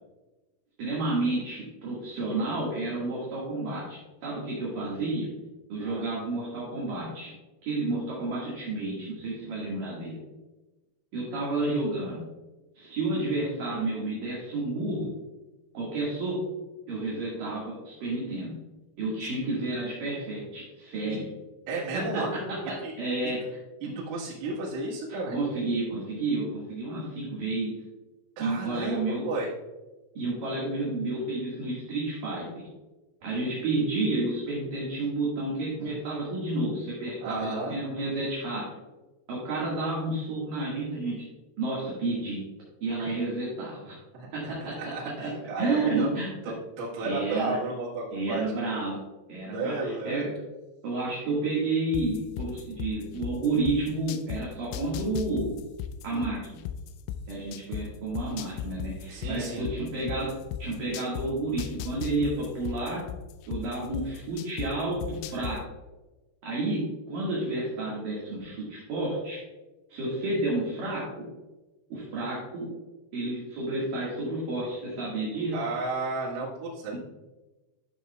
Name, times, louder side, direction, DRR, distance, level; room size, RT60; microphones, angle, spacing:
voice 1, 0.8-5.3 5.7-7.3 7.6-10.2 11.1-12.2 12.8-15.1 15.7-16.4 16.9-18.5 19.0-21.3 21.9-23.4 25.3-27.7 28.4-29.2 30.1-32.7 33.2-38.6 39.3-41.2 41.6-42.4 42.8-44.0 44.3-44.9 45.2-45.3 45.6-46.3 47.0-47.6 48.1-49.0 49.3-50.3 50.8-55.5 56.0-56.4 57.3-60.3 60.6-63.0 63.5-65.6 66.4-69.4 69.9-71.2 71.9-72.7 73.1-75.5, right 2 dB, 55° right, -6 dB, 2.8 m, -30 dB
voice 2, 21.7-22.4 22.8-22.9 23.2-23.3 23.8-25.4 28.4-29.5 37.2-37.7 44.1-46.1 46.4-48.4 49.5-50.3 59.1-59.7 75.5-77.0, right 2 dB, 85° right, -7 dB, 4.3 m, -33 dB
sound 1, 51.9-54.4 54.7-57.8 58.2-61.3 61.6-64.7 65.0-65.5, left 11 dB, 85° left, 3.0 m, -35 dB
12.5 x 6.3 x 2.3 m, 1.1 s
omnidirectional pair, 5.7 m